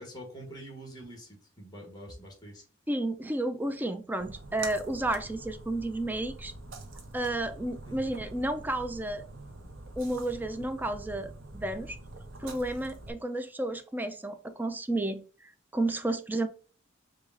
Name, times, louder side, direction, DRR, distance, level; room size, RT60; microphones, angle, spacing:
voice 1, 0.0-2.6 7.8-8.1, right 1 dB, 20° left, 0 dB, 1.6 m, -45 dB
voice 2, 2.9-6.5 7.1-9.2 10.0-12.0 12.4-15.2 15.7-16.5, right 1 dB, 10° right, 9 dB, 0.4 m, -32 dB
Splash splatter, 4.2-13.1, right 2 dB, 75° right, 0.9 m, -45 dB
4.9 x 2.4 x 3.7 m, 0.38 s
head